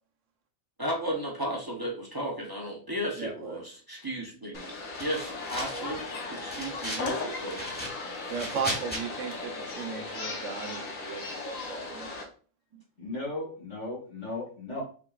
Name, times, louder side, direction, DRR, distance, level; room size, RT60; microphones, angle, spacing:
voice 1, 0.8-4.7 5.0-7.7, equal, 20° right, 0 dB, 0.7 m, -34 dB
voice 2, 3.2-3.6 8.3-12.1, right 6 dB, 70° right, 5 dB, 1.1 m, -36 dB
sound 1, 4.5-12.2, left 3 dB, 90° left, 1.4 m, -37 dB
sound 2, 5.0-6.0 6.3-7.1 7.5-9.0, equal, 10° left, 1.2 m, -37 dB
voice 3, 13.0-14.8, left 2 dB, 65° left, -3 dB, 2.1 m, -36 dB
5.7 x 3.5 x 2.4 m, 0.41 s
omnidirectional pair, 1.3 m